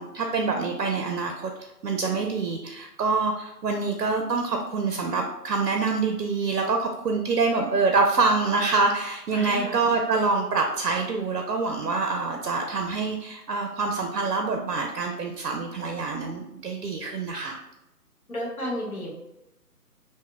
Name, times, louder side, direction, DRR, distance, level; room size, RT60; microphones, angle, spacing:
voice 1, 0.0-17.6, right 4 dB, 70° right, 3 dB, 0.5 m, -26 dB
voice 2, 9.3-9.8 18.3-19.1, equal, 60° left, -3 dB, 1.2 m, -32 dB
2.7 x 2.1 x 3.5 m, 0.92 s
figure-of-eight pair, 140°, 48 cm